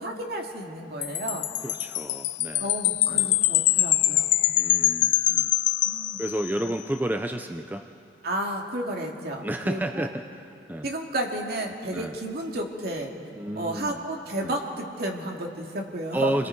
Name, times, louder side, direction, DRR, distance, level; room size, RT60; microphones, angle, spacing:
voice 1, 0.0-1.5 2.6-4.3 5.8-6.2 6.6-6.7 8.2-10.1 10.8-13.1 13.6-16.3, right 1 dB, 60° right, 1 dB, 2.4 m, -32 dB
Wind chime, 1.0-6.7, left 14 dB, 90° left, 0.5 m, -24 dB
voice 2, 1.6-2.8 3.1-3.3 4.6-5.5 6.2-7.8 9.4-10.9 11.9-12.1 13.4-14.0 14.4-14.5 16.1-16.5, right 1 dB, 10° right, 6 dB, 0.5 m, -31 dB
29.5 x 22.0 x 4.7 m, 2.6 s
head